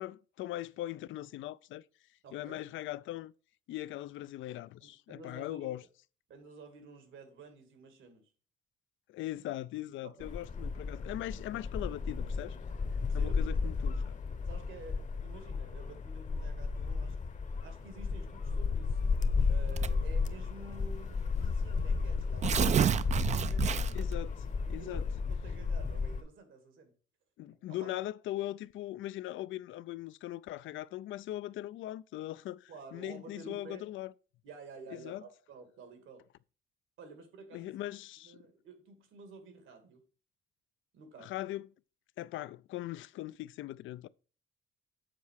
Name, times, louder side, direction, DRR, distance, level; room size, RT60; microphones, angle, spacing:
voice 1, 0.0-1.8 2.3-3.3 3.7-5.8 9.1-12.6 13.1-14.1 23.9-24.3 24.7-25.0 27.4-34.1 34.9-35.2 37.5-38.4 41.2-41.7 42.2-44.1, left 14 dB, 75° left, 0.4 m, -40 dB
voice 2, 2.2-2.7 4.8-5.7 6.3-8.3 10.0-10.3 10.7-10.8 13.0-17.2 17.6-19.0 19.5-24.2 24.7-26.9 27.8-27.9 32.7-33.8 34.4-36.2 37.0-37.7 38.2-40.0 40.9-41.4, right 4 dB, 80° right, 2.1 m, -51 dB
sound 1, 10.2-26.2, left 4 dB, 40° left, 0.9 m, -33 dB
Tearing, 19.8-20.2 21.0-21.1 21.4-21.5 22.2-24.1, right 8 dB, 35° right, 0.4 m, -29 dB
7.6 x 4.7 x 6.2 m
cardioid pair, 90°, 20 cm